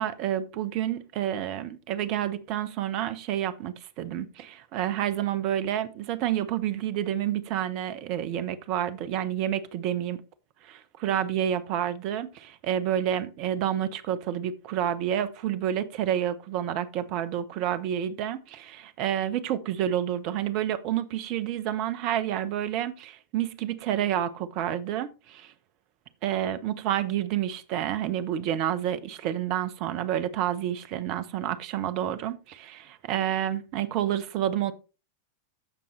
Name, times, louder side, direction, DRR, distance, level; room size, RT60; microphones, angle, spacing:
voice 1, 0.0-10.2 10.6-25.5 26.2-34.7, right 11 dB, 45° right, 0.8 m, -29 dB
14.5 x 5.4 x 3.2 m
figure-of-eight pair, 90°, 0 cm